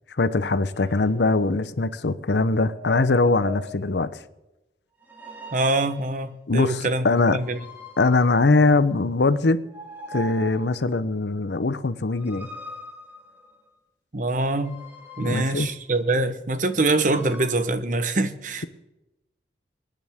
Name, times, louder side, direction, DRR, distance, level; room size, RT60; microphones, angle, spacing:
voice 1, 0.2-4.1 6.5-7.4 8.0-9.6 10.1-12.5 15.2-15.7, left 3 dB, 80° left, 0.8 m, -22 dB
sound 1, 0.7-1.1 2.5-4.0 5.0-6.2 7.4-9.1 9.7-10.9 12.1-13.7 14.5-15.9 16.9-17.5, equal, 10° right, 2.0 m, -42 dB
voice 2, 5.5-7.6 14.1-14.8 15.2-18.6, right 2 dB, 45° right, 1.0 m, -24 dB
24.5 x 9.9 x 3.6 m
head